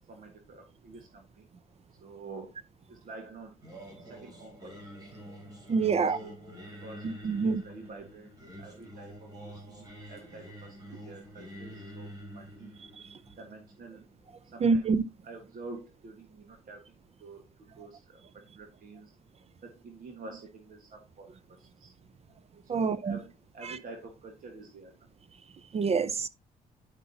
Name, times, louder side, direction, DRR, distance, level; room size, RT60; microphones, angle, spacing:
voice 1, 0.1-1.5 2.0-2.5 2.9-3.6 4.0-4.8 5.8-6.3 6.7-8.3 8.6-12.8 13.4-14.0 14.4-14.9 15.2-19.1 19.6-21.9 22.6-25.0, right 3 dB, 60° right, 1.6 m, -48 dB
Singing, 3.6-14.7, equal, 25° right, 3.4 m, -47 dB
voice 2, 5.7-6.2 7.0-7.6 14.6-15.0 22.7-23.2 23.6-23.8 25.7-26.3, right 4 dB, 40° right, 0.6 m, -26 dB
9.8 x 5.4 x 2.8 m
cardioid pair, 90°, 16 cm